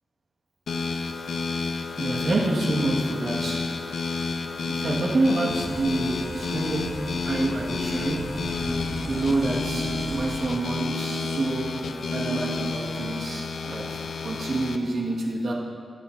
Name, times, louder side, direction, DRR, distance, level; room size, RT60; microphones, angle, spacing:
sound 1, 0.7-14.8, left 4 dB, 75° left, 0.8 m, -30 dB
voice 1, 2.0-3.8 4.7-8.4 9.0-11.8 12.1-15.5, right 2 dB, 65° right, -3 dB, 1.8 m, -27 dB
sound 2, 5.5-10.5, right 2 dB, 35° right, 1.6 m, -37 dB
23.0 x 8.9 x 2.7 m, 2.1 s
wide cardioid pair, 160°, 0 cm